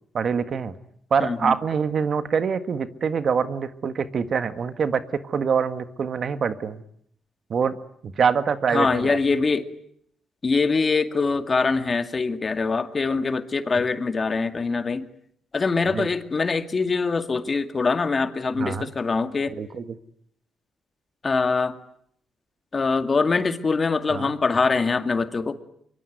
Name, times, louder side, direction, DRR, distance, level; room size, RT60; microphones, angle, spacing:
voice 1, 0.1-0.7 1.1-6.8 7.5-7.8 8.0-9.2 15.9-16.1 18.6-18.9 19.5-19.8 24.1-24.3, right 6 dB, 50° right, 11 dB, 1.6 m, -25 dB
voice 2, 1.2-1.5 8.7-9.7 10.4-15.0 15.5-19.6 21.2-21.8 22.7-25.5, left 4 dB, 35° left, 9 dB, 2.2 m, -23 dB
24.5 x 24.0 x 9.4 m, 0.70 s
cardioid pair, 95°, 0 cm